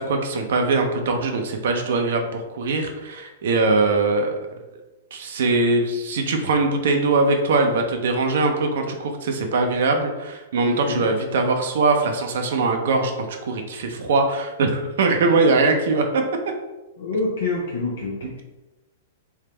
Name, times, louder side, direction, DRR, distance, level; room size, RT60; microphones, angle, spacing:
voice 1, 0.0-4.3 5.1-13.1 13.4-16.0, right 3 dB, 65° right, 3 dB, 0.6 m, -21 dB
voice 2, 10.6-11.1 17.0-18.4, left 3 dB, 65° left, -2 dB, 0.6 m, -27 dB
3.5 x 2.8 x 3.2 m, 1.1 s
hypercardioid pair, 110°, 0 cm